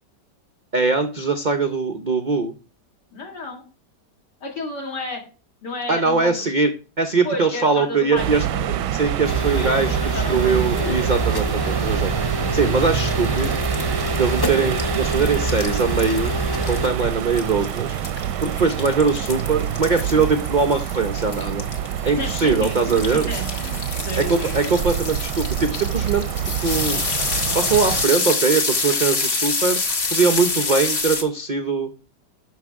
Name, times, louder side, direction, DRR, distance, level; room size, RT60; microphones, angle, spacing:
voice 1, 0.7-2.5 5.9-6.7 7.0-8.4 8.9-12.1 12.5-13.6 14.2-16.3 16.7-17.9 18.4-21.6 22.0-23.3 24.2-26.2 26.6-27.0 27.5-29.8 30.1-31.9, right 4 dB, 70° right, 7 dB, 0.4 m, -21 dB
voice 2, 3.1-3.6 4.4-5.2 5.6-6.5 7.2-8.8 9.5-11.0 22.0-24.8, left 2 dB, 75° left, 0 dB, 2.8 m, -32 dB
sound 1, 8.2-28.1, right 10 dB, 85° right, 1.2 m, -26 dB
sound 2, 9.2-16.9, equal, 25° left, 0.5 m, -26 dB
sound 3, 12.8-31.2, left 4 dB, 40° left, 1.3 m, -27 dB
10.5 x 6.4 x 3.6 m, 0.36 s
omnidirectional pair, 1.8 m